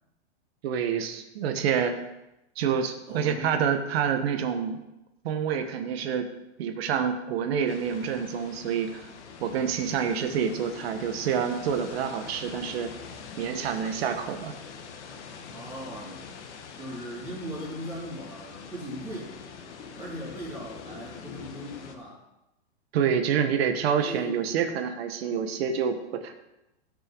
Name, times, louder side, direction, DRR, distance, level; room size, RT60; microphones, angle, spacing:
voice 1, 0.6-1.9 2.5-4.8 5.2-6.3 6.6-9.1 9.4-12.9 13.4-14.6 22.9-26.3, right 7 dB, 60° right, 7 dB, 1.5 m, -27 dB
voice 2, 3.1-3.5 15.4-16.3 16.8-19.4 20.0-22.2 24.0-24.6, equal, 10° right, -9 dB, 4.0 m, -39 dB
sound 1, 7.7-21.9, left 6 dB, 75° left, 1.7 m, -44 dB
16.0 x 6.5 x 4.7 m, 0.93 s
supercardioid pair, 150°, 35 cm